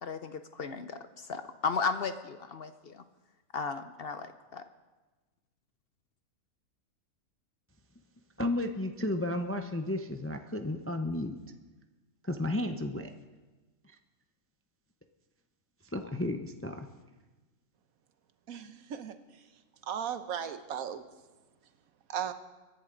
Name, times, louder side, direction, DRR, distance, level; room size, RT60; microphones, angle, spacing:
voice 1, 0.0-3.0 3.5-4.6, left 5 dB, 55° left, 10 dB, 0.7 m, -35 dB
voice 2, 8.4-11.4 12.2-13.1 15.8-16.9, left 1 dB, 20° left, 6 dB, 0.4 m, -33 dB
voice 3, 18.5-19.2 19.9-21.0 22.1-22.3, right 8 dB, 85° right, 10 dB, 1.3 m, -36 dB
24.0 x 10.5 x 3.9 m, 1.2 s
omnidirectional pair, 1.4 m